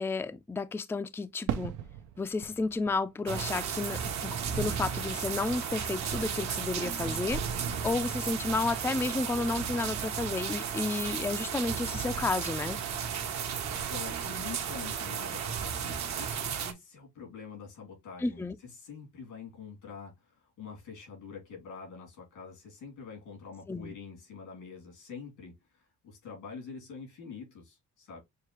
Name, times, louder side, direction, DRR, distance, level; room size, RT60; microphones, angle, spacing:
voice 1, 0.0-1.7 2.2-7.4 7.8-12.8 18.2-18.6 23.7-24.0, left 3 dB, 10° left, 0.4 m, -32 dB
Fireworks, 1.5-5.8 6.1-6.9, right 10 dB, 85° right, 0.5 m, -41 dB
sound 1, 3.3-16.7, right 7 dB, 65° right, 0.9 m, -34 dB
voice 2, 13.7-28.2, left 5 dB, 90° left, 2.7 m, -46 dB
6.6 x 2.2 x 3.0 m
cardioid pair, 90°, 30 cm